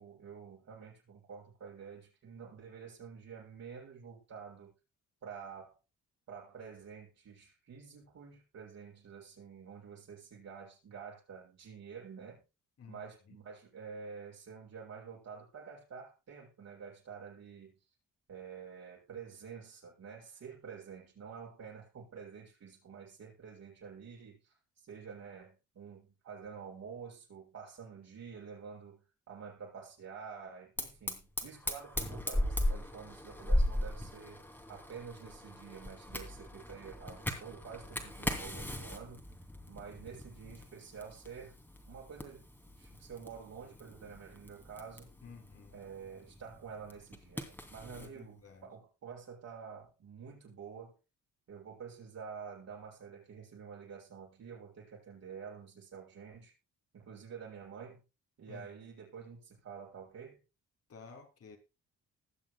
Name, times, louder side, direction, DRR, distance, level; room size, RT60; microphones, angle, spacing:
voice 1, 0.0-4.7 5.2-5.8 6.3-12.4 12.9-17.8 18.3-24.5 24.8-34.4 34.7-39.2 39.7-41.6 41.8-42.5 42.8-45.1 45.7-51.0 51.5-56.5 56.9-58.0 58.4-60.4, right 6 dB, 60° right, 7.2 m, -49 dB
voice 2, 12.8-13.4 45.2-45.8 48.0-48.7 58.5-58.7 60.9-61.6, left 5 dB, 50° left, 3.0 m, -53 dB
Fire, 30.8-48.1, left 1 dB, 5° left, 2.6 m, -38 dB
20.5 x 7.4 x 2.2 m
cardioid pair, 90°, 30 cm